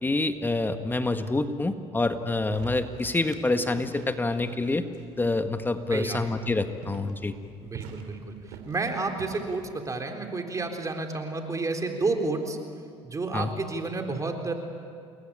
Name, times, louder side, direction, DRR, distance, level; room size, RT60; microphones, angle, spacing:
voice 1, 0.0-4.8 5.2-7.3 13.3-13.5, left 2 dB, 15° left, 8 dB, 1.7 m, -27 dB
sound 1, 2.3-9.8, right 6 dB, 85° right, 3.2 m, -47 dB
voice 2, 5.9-6.2 7.6-12.6 13.0-14.5, right 3 dB, 25° right, 4 dB, 3.9 m, -30 dB
29.0 x 20.5 x 9.0 m, 2.3 s
supercardioid pair, 90°, 12 cm